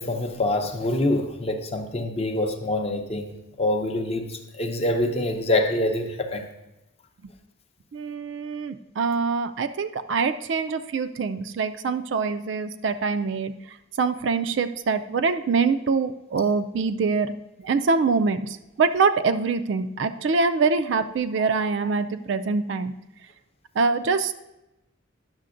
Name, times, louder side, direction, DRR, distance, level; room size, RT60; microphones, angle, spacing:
voice 1, 0.0-6.5 21.4-21.5, left 1 dB, 30° left, 0.6 m, -25 dB
voice 2, 7.9-17.3 17.6-22.9 23.8-24.3, right 4 dB, 60° right, 0.4 m, -24 dB
10.5 x 6.6 x 2.5 m
head